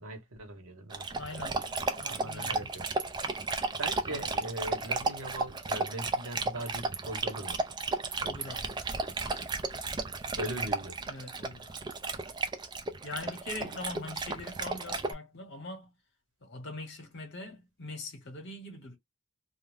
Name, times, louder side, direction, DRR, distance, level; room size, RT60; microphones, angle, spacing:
voice 1, 0.0-2.9 3.8-7.6 10.4-11.1, right 1 dB, 80° right, 1.1 m, -40 dB
Dog, 0.9-15.1, right 3 dB, 20° right, 0.3 m, -34 dB
voice 2, 1.2-1.6 2.0-2.7 4.1-4.2 8.2-8.8 11.1-11.7 13.0-15.9 16.4-19.0, left 2 dB, 55° left, 1.0 m, -42 dB
2.3 x 2.1 x 3.2 m
head